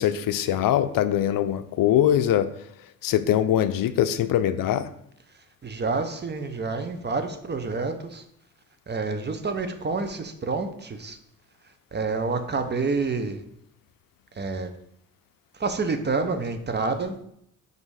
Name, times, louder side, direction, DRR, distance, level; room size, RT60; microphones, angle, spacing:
voice 1, 0.0-2.5 3.0-4.9, left 11 dB, 65° left, 0.5 m, -22 dB
voice 2, 5.6-8.2 8.9-11.2 11.9-13.4 14.3-14.7 15.6-17.1, right 4 dB, 30° right, 0.7 m, -28 dB
5.3 x 4.0 x 4.8 m
cardioid pair, 80°, 37 cm